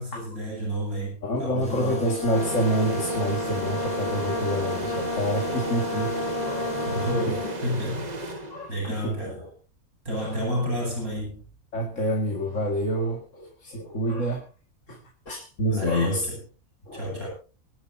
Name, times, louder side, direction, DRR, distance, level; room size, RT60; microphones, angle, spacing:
voice 1, 0.0-2.1 6.8-9.4 10.0-11.4 15.7-16.4 16.9-17.3, equal, 85° right, -2 dB, 7.8 m, -31 dB
voice 2, 1.2-6.7 7.3-7.5 8.5-9.5 10.2-10.4 11.7-14.4 14.9-15.0 15.3-16.3 16.9-17.3, equal, 60° left, 0 dB, 2.4 m, -28 dB
sound 1, 1.6-7.1, left 1 dB, 5° left, 5.2 m, -40 dB
Brass instrument, 1.8-7.7, left 2 dB, 30° left, 1.1 m, -31 dB
sound 2, 2.3-9.0, right 2 dB, 30° right, 1.4 m, -35 dB
24.5 x 12.0 x 2.8 m, 0.35 s
omnidirectional pair, 1.5 m